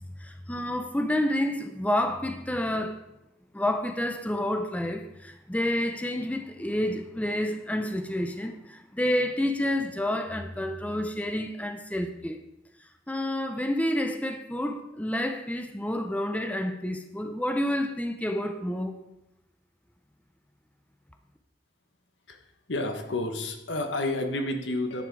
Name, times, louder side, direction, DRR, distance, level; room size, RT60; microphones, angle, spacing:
voice 1, 0.2-3.0 3.5-12.4 13.1-19.0, left 1 dB, 10° left, 0.6 m, -29 dB
voice 2, 22.3-25.1, left 2 dB, 75° left, 1.3 m, -30 dB
10.5 x 8.1 x 4.7 m
head